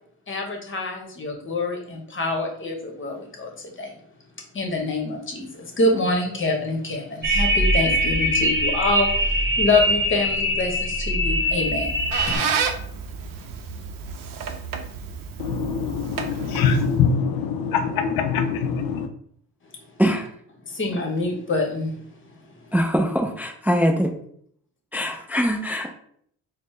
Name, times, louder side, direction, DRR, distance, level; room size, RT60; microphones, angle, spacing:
voice 1, 0.3-3.9 4.5-9.1 9.6-11.9 12.3-12.4 20.7-22.0, left 2 dB, 35° left, 2 dB, 1.0 m, -26 dB
sound 1, 7.2-12.4, equal, 30° right, 1.3 m, -22 dB
Squeak, 11.6-17.1, right 6 dB, 65° right, 0.6 m, -31 dB
voice 2, 15.4-19.1, left 6 dB, 85° left, 7 dB, 0.5 m, -23 dB
voice 3, 20.0-20.3 22.7-24.1 24.9-25.9, equal, 5° right, 2 dB, 0.4 m, -22 dB
4.0 x 2.1 x 3.1 m, 0.64 s
cardioid pair, 75°, 36 cm